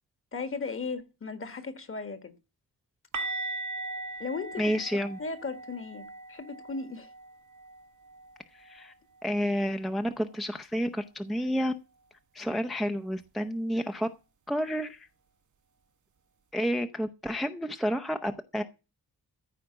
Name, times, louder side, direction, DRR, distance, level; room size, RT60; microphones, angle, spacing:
voice 1, 0.3-2.3 4.2-7.1, left 4 dB, 35° left, 1.6 m, -37 dB
sound 1, 3.1-8.9 9.2-9.4 9.8-9.9 13.2-13.3, right 2 dB, 50° right, 0.9 m, -40 dB
voice 2, 4.6-5.2 8.5-8.9 9.2-11.7 12.3-14.1 14.5-15.1 16.5-18.6, equal, ahead, 0.6 m, -30 dB
14.5 x 5.0 x 8.8 m
wide cardioid pair, 155°, 37 cm